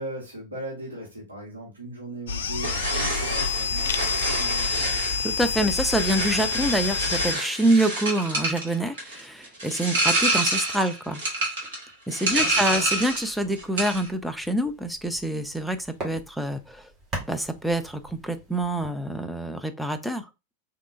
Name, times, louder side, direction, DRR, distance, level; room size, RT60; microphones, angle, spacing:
voice 1, 0.0-5.0 11.9-12.1 12.3-12.9, right 1 dB, 75° right, 1.4 m, -38 dB
sound 1, 2.3-7.4, left 5 dB, 65° left, 0.3 m, -27 dB
sound 2, 2.6-13.3 13.6-14.1, right 2 dB, 60° right, 1.6 m, -28 dB
voice 2, 5.2-11.2 12.1-16.8 17.3-20.3, right 1 dB, ahead, 0.4 m, -26 dB
sound 3, 12.2-18.9, right 1 dB, 25° right, 1.6 m, -42 dB
3.6 x 2.8 x 2.4 m
figure-of-eight pair, 90°, 0 cm